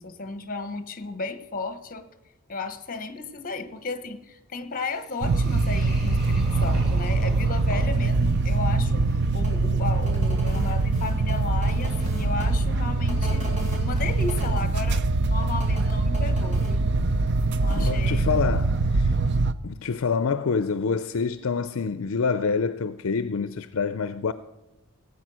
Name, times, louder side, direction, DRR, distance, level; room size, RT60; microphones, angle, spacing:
voice 1, 0.0-2.1 2.5-13.5 13.8-16.8 17.6-18.3, left 3 dB, 40° left, 1.0 m, -34 dB
sound 1, 4.7-14.5, equal, ahead, 5.7 m, -47 dB
sound 2, 5.2-19.5, right 3 dB, 55° right, 0.5 m, -23 dB
sound 3, 9.4-9.5 10.0-12.4 13.1-14.6 15.6-16.7 17.7-17.9, equal, 35° right, 4.0 m, -39 dB
voice 2, 17.7-19.1 19.6-24.3, left 5 dB, 65° left, 0.5 m, -27 dB
17.0 x 8.5 x 6.2 m
head